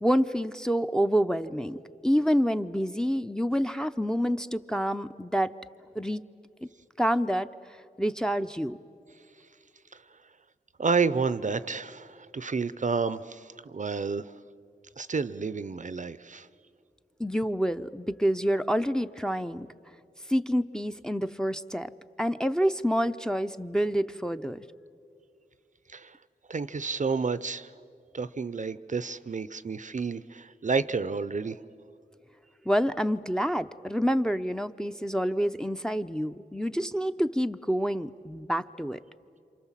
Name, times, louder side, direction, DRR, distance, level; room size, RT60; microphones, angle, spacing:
voice 1, 0.0-1.8 2.0-5.5 6.0-6.2 6.6-6.7 7.0-7.5 8.0-8.8 17.2-19.7 20.3-21.9 22.2-24.6 32.7-39.0, equal, 5° left, 7 dB, 0.6 m, -27 dB
voice 2, 10.8-14.3 15.0-16.5 25.9-26.2 26.5-27.7 28.1-31.6, right 4 dB, 50° right, 15 dB, 0.6 m, -30 dB
28.5 x 27.0 x 7.4 m, 2.5 s
wide cardioid pair, 75°, 17 cm